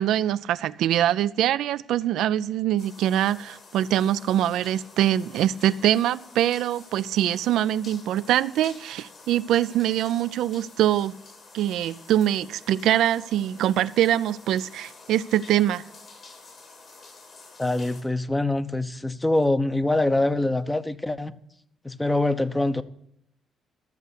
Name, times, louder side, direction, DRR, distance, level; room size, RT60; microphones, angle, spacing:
voice 1, 0.0-11.2 11.5-15.8, right 12 dB, 85° right, 0.4 m, -23 dB
sound 1, 2.8-18.0, left 3 dB, 55° left, 3.0 m, -49 dB
voice 2, 17.6-21.3 21.8-22.8, left 2 dB, 10° left, 0.7 m, -24 dB
13.0 x 6.7 x 8.2 m
cardioid pair, 90°, 0 cm